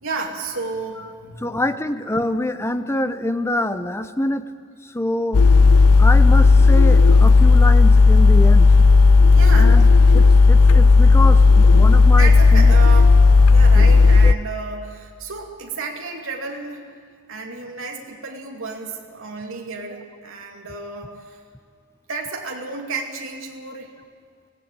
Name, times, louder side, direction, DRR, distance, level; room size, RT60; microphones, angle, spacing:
voice 1, 0.0-1.6 9.3-9.8 12.2-13.2 13.5-16.9 17.3-21.4 22.1-23.9, right 4 dB, 60° right, 1 dB, 2.7 m, -32 dB
voice 2, 1.4-4.5 4.8-5.4 6.0-8.7 9.5-9.9 10.1-12.7 13.7-13.9 14.2-14.4, left 1 dB, 10° left, 10 dB, 0.9 m, -25 dB
sound 1, 5.3-14.3, left 4 dB, 85° left, 0.7 m, -11 dB
23.5 x 16.5 x 9.1 m, 2.2 s
head